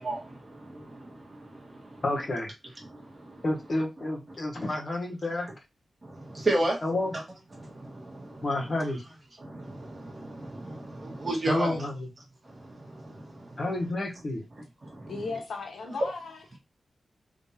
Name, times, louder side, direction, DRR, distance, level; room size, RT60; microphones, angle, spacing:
voice 1, 0.0-2.0 2.8-3.4 6.0-6.8 7.5-8.5 9.4-11.9 12.4-13.6 14.8-15.1 16.0-16.1, right 1 dB, 30° right, 1.6 m, -34 dB
voice 2, 2.0-2.5 3.4-5.6 6.8-7.1 8.4-9.0 11.5-12.1 13.6-14.4, left 2 dB, 40° left, 1.2 m, -30 dB
voice 3, 15.1-16.6, left 4 dB, 85° left, 1.2 m, -36 dB
3.6 x 2.9 x 4.2 m
wide cardioid pair, 150°, 0 cm